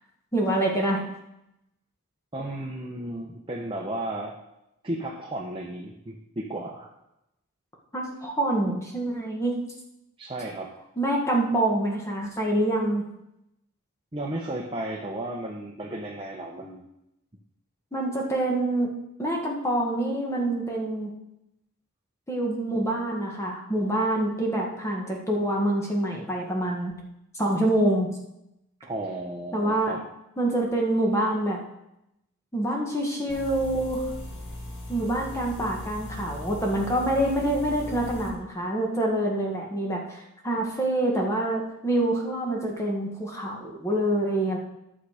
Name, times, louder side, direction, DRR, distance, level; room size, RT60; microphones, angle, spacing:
voice 1, 0.3-1.0 7.9-9.6 11.0-13.0 17.9-18.9 19.2-21.1 22.3-26.9 27.3-28.1 29.5-30.0 30.4-31.6 32.5-34.1 34.9-44.6, right 1 dB, 15° left, -1 dB, 1.4 m, -26 dB
voice 2, 2.3-4.3 4.8-6.9 10.2-10.7 14.1-16.9 28.9-30.0, right 1 dB, 25° right, -2 dB, 0.9 m, -34 dB
sound 1, 33.3-38.3, left 1 dB, 55° left, 2.3 m, -38 dB
11.0 x 6.6 x 4.9 m, 0.86 s
head